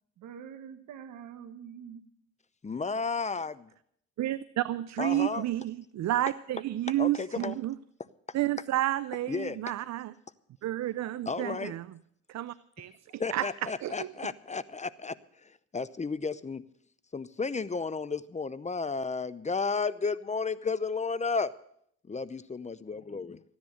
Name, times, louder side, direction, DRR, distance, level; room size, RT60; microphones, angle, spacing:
voice 1, 0.2-2.0 5.3-5.4, right 8 dB, 90° right, 1.4 m, -45 dB
voice 2, 2.6-3.7 5.0-5.4 7.0-7.6 9.3-9.6 11.3-11.7 13.2-15.2 15.4-16.6 17.1-21.5 22.1-23.4, left 4 dB, 25° left, 0.6 m, -33 dB
voice 3, 4.2-7.7 8.3-10.1 10.6-11.9 12.3-13.5 13.8-14.1, right 14 dB, 65° right, 0.5 m, -31 dB
15.0 x 10.5 x 6.5 m
cardioid pair, 85°, 30 cm